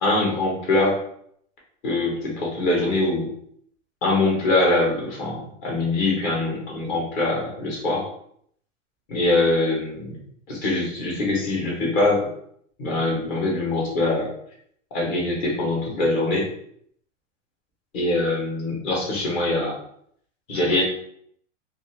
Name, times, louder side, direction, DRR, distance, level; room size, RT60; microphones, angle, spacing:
voice 1, 0.0-1.0 1.8-3.3 4.0-8.1 9.1-10.2 10.5-12.3 12.8-14.3 14.9-16.5 17.9-19.8 20.5-20.8, left 2 dB, 25° left, -3 dB, 0.8 m, -23 dB
2.4 x 2.4 x 3.1 m, 0.68 s
supercardioid pair, 155°, 38 cm